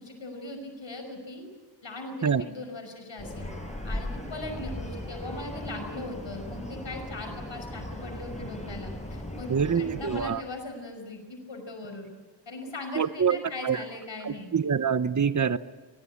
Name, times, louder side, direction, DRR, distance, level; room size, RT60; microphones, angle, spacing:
voice 1, 0.0-1.4 1.8-3.5 3.8-12.1 12.5-14.5, left 2 dB, 90° left, 5 dB, 5.6 m, -39 dB
sound 1, 3.2-10.3, left 1 dB, 15° left, 6.8 m, -38 dB
voice 2, 9.5-10.4 13.0-13.4 13.6-13.8 14.2-15.6, right 6 dB, 40° right, 14 dB, 0.8 m, -25 dB
22.5 x 20.5 x 8.8 m, 1.3 s
wide cardioid pair, 65°, 44 cm